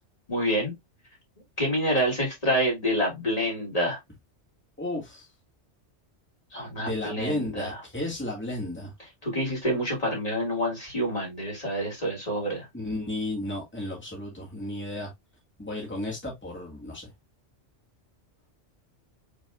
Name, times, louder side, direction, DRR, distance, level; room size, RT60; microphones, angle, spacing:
voice 1, 0.3-0.7 1.6-4.0 6.5-7.8 9.2-12.6, equal, 30° left, 2.9 m, -27 dB
voice 2, 4.8-5.3 6.8-8.9 12.7-15.1 15.6-17.1, left 1 dB, 10° left, 2.1 m, -33 dB
5.4 x 4.0 x 2.4 m
omnidirectional pair, 1.2 m